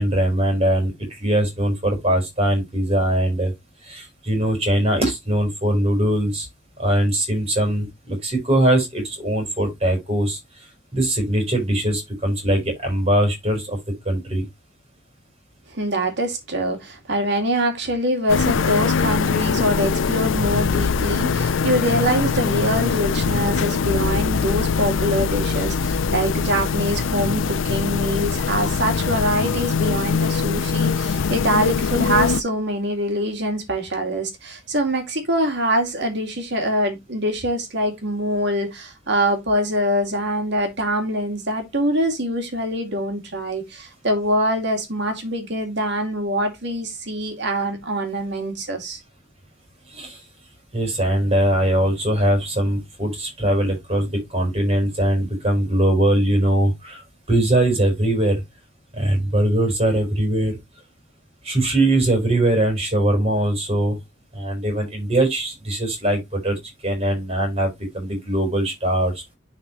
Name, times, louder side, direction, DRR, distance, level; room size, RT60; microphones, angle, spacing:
voice 1, 0.0-3.5 3.8-6.5 6.8-10.6 10.9-13.8 14.0-14.4 49.9-50.2 50.7-58.4 58.9-60.6 61.4-64.0 64.3-69.2, right 1 dB, 35° right, 4.5 m, -21 dB
voice 2, 15.7-49.0, equal, 60° right, 2.3 m, -24 dB
sound 1, 18.3-32.4, left 5 dB, 85° left, 0.5 m, -22 dB
10.5 x 4.3 x 3.0 m
head